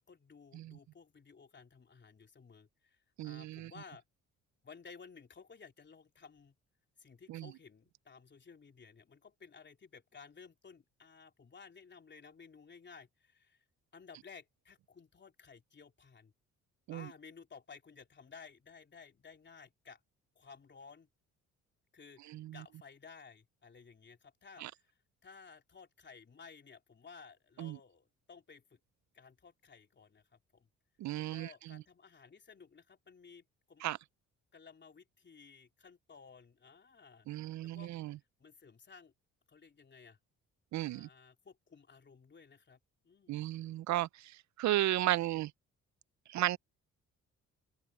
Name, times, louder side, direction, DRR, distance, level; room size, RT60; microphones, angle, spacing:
voice 1, 0.0-4.1 4.6-6.6 7.0-13.6 13.9-16.3 16.9-20.0 20.4-21.1 21.9-28.8 29.1-30.7 31.2-33.8 34.5-37.3 37.6-37.9 38.4-39.1 39.5-40.2 40.8-42.8 43.0-43.5, left 5 dB, 35° left, 3.5 m, -56 dB
voice 2, 3.2-3.7 7.3-7.5 16.9-17.1 22.3-22.6 24.6-24.7 27.6-27.8 31.0-31.8 33.8-34.0 37.3-38.2 40.7-41.1 43.3-45.5 46.3-46.6, right 14 dB, 70° right, 0.5 m, -34 dB
cardioid pair, 90°, 30 cm